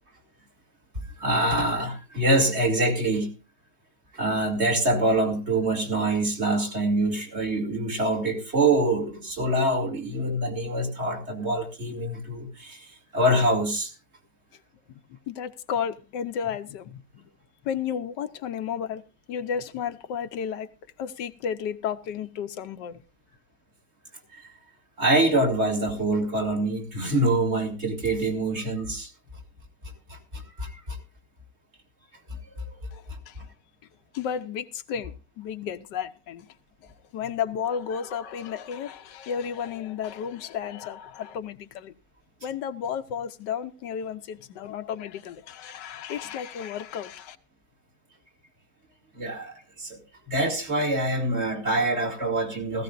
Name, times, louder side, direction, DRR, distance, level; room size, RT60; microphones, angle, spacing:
voice 1, 1.2-3.3 4.1-13.9 24.3-24.4 25.0-29.1 30.1-31.0 32.6-32.7 49.2-50.0 50.3-52.8, right 1 dB, 40° right, 2.5 m, -25 dB
voice 2, 15.1-17.2 17.6-19.0 19.3-20.7 21.0-23.0 32.9-33.5 34.1-36.5 36.8-41.9 42.4-47.4, left 8 dB, 90° left, 1.5 m, -33 dB
16.5 x 15.0 x 2.5 m
omnidirectional pair, 1.8 m